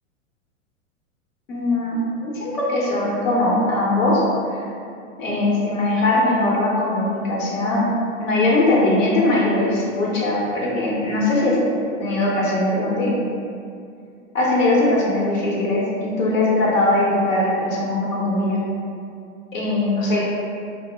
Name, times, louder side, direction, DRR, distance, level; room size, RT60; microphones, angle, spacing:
voice 1, 1.5-4.2 5.2-7.8 8.2-11.6 12.0-13.1 14.3-18.6 19.5-20.2, left 2 dB, 75° left, -5 dB, 0.9 m, -20 dB
2.1 x 2.0 x 3.3 m, 2.4 s
hypercardioid pair, 110°, 39 cm